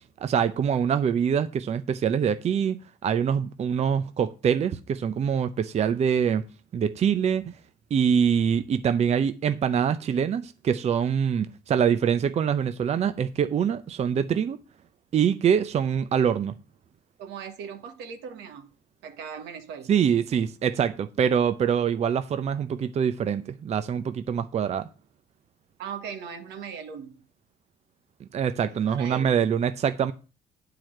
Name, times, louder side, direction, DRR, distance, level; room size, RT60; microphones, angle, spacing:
voice 1, 0.2-6.4 6.7-7.4 7.9-14.6 15.1-16.5 19.9-24.9 28.3-30.1, right 7 dB, 40° right, 0.6 m, -24 dB
voice 2, 17.2-18.7 19.0-19.9 25.8-27.2 28.7-29.3, right 6 dB, 90° right, 1.6 m, -39 dB
8.9 x 4.8 x 7.6 m
cardioid pair, 110°, 17 cm